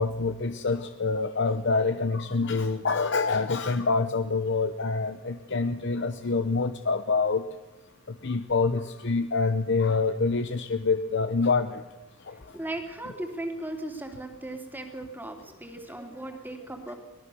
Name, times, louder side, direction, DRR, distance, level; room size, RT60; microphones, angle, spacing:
voice 1, 0.0-7.5 8.1-11.8 12.2-12.6, left 4 dB, 60° left, 9 dB, 0.8 m, -26 dB
voice 2, 12.5-16.9, right 1 dB, 10° right, 4 dB, 2.9 m, -37 dB
24.0 x 18.0 x 7.0 m, 1.1 s
head